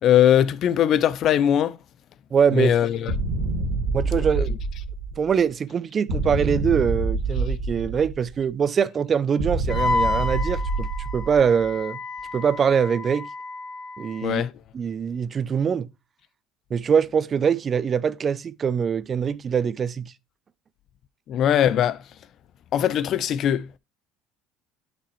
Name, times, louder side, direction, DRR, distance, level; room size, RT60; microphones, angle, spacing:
voice 1, 0.0-1.8 2.5-3.1 4.2-4.3 14.2-14.5 21.3-22.0 22.7-23.7, left 10 dB, 55° left, 0.5 m, -20 dB
voice 2, 2.3-2.7 3.9-4.5 5.2-12.0 12.3-13.3 14.0-14.4 14.7-15.9 16.7-20.1, right 7 dB, 40° right, 0.5 m, -23 dB
sound 1, 3.1-5.4 6.1-8.4 9.4-11.7, right 3 dB, 80° right, 1.9 m, -27 dB
Wind instrument woodwind instrument, 9.7-14.3, left 3 dB, 40° left, 2.0 m, -30 dB
8.4 x 6.0 x 3.2 m
hypercardioid pair, 75°, 0 cm